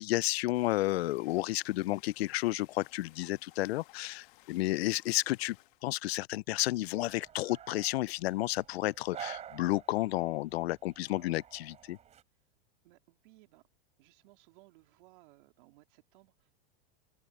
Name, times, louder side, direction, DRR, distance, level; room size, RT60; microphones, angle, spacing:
voice 1, 0.0-5.6 5.8-12.0, left 17 dB, 85° left, 0.5 m, -31 dB
sound 1, 0.5-5.9, left 21 dB, 55° left, 1.4 m, -59 dB
sound 2, 6.9-12.2, right 9 dB, 20° right, 3.1 m, -49 dB
voice 2, 12.8-13.7 14.0-16.5, right 20 dB, 60° right, 3.4 m, -61 dB
open air
supercardioid pair, 150°, 31 cm